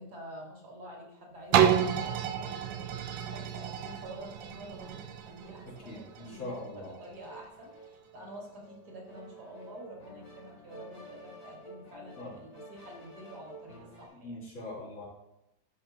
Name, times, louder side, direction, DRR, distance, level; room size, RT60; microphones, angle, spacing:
voice 1, 0.0-14.4, right 1 dB, 55° right, -1 dB, 2.4 m, -48 dB
sound 1, 1.5-7.3 7.8-7.9, right 9 dB, 80° right, 1.3 m, -30 dB
sound 2, 2.0-14.1, right 1 dB, 45° left, 3.0 m, -53 dB
voice 2, 5.8-6.9 12.2-12.4 14.2-15.0, left 2 dB, 85° left, -7 dB, 4.1 m, -41 dB
11.5 x 5.3 x 2.9 m, 0.86 s
omnidirectional pair, 2.1 m